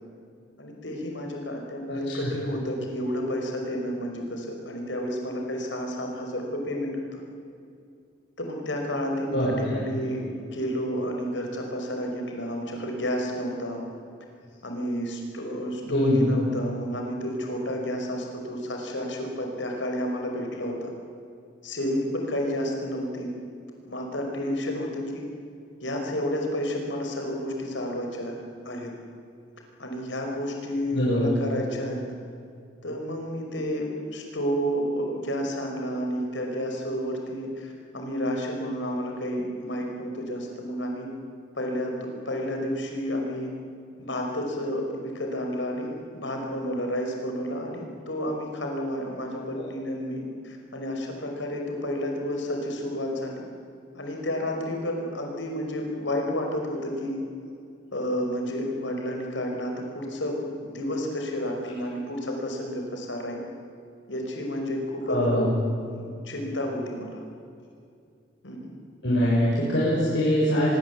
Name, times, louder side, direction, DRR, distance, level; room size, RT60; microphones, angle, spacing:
voice 1, 0.6-7.2 8.4-13.8 14.6-20.9 21.6-23.3 23.9-25.3 25.8-28.9 29.8-32.0 32.8-41.1 41.6-43.5 44.0-53.4 53.9-57.2 57.9-63.4 64.1-65.5 65.9-67.2 68.4-68.8, equal, 85° left, 2 dB, 5.5 m, -31 dB
voice 2, 1.9-2.3 9.3-9.8 15.9-16.2 30.9-31.3 49.6-49.7 65.1-65.5 69.0-70.7, equal, 70° left, -7 dB, 6.8 m, -24 dB
24.5 x 22.5 x 8.4 m, 2.4 s
head